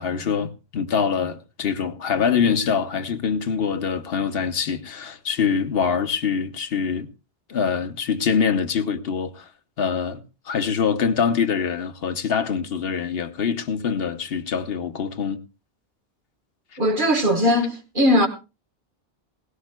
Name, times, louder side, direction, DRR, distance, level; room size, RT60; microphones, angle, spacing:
voice 1, 0.0-7.1 7.5-9.5 9.8-15.4, left 6 dB, 70° left, 1.1 m, -24 dB
voice 2, 16.8-18.3, equal, 55° right, 1.5 m, -19 dB
18.0 x 16.5 x 2.2 m
omnidirectional pair, 1.0 m